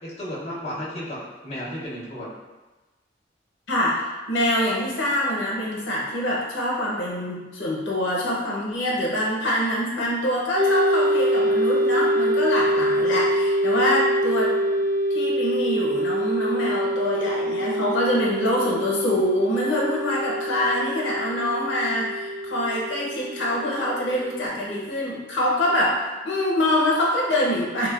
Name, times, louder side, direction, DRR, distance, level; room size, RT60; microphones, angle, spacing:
voice 1, 0.0-2.3, equal, 35° left, -7 dB, 0.6 m, -33 dB
voice 2, 3.7-14.6 15.1-27.9, left 1 dB, 85° left, -4 dB, 0.6 m, -25 dB
sound 1, 10.6-24.5, equal, 30° right, 0.4 m, -25 dB
3.1 x 2.1 x 2.2 m, 1.2 s
head